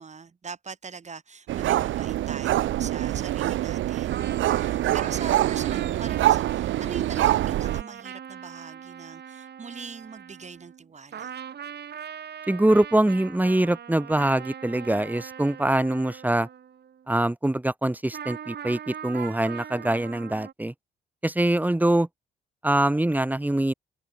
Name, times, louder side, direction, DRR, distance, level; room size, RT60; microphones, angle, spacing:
voice 1, 0.0-11.3, right 5 dB, 35° right, 3.2 m, -41 dB
sound 1, 1.5-7.8, right 14 dB, 75° right, 0.9 m, -25 dB
sound 2, 4.1-10.9 11.1-17.1 18.1-20.5, right 8 dB, 55° right, 3.7 m, -41 dB
voice 2, 12.5-16.5 17.1-20.7 21.2-22.1 22.6-23.7, right 1 dB, 10° right, 3.1 m, -23 dB
open air
cardioid pair, 90°, 20 cm